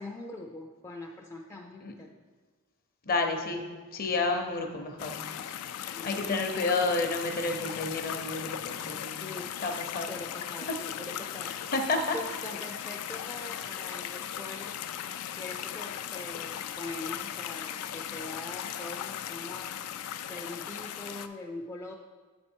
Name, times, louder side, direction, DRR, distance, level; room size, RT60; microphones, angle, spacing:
voice 1, 0.0-2.1 6.0-6.3 9.2-9.5 10.1-11.5 12.1-14.8 15.3-19.9 20.3-21.9, left 2 dB, 15° left, 0 dB, 0.3 m, -42 dB
voice 2, 3.0-3.6 3.9-5.3 6.0-9.2 9.6-10.1 11.7-12.2, left 3 dB, 40° left, 4 dB, 0.7 m, -30 dB
sound 1, 5.0-21.3, left 10 dB, 90° left, 0.3 m, -38 dB
7.6 x 4.3 x 4.4 m, 1.4 s
head